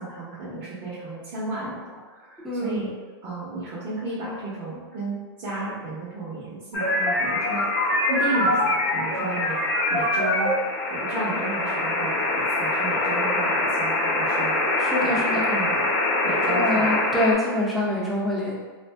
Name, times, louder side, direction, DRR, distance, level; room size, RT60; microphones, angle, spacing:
voice 1, 0.0-1.8 2.1-2.9 3.2-10.5 10.9-14.8 15.1-15.8 16.2-16.9, right 2 dB, 45° right, -11 dB, 1.0 m, -33 dB
voice 2, 2.4-2.8 14.8-15.5 16.5-18.5, left 1 dB, ahead, -6 dB, 0.6 m, -25 dB
sound 1, 6.7-17.3, left 1 dB, 45° left, 0.8 m, -24 dB
2.5 x 2.1 x 3.3 m, 1.4 s
supercardioid pair, 145°, 13 cm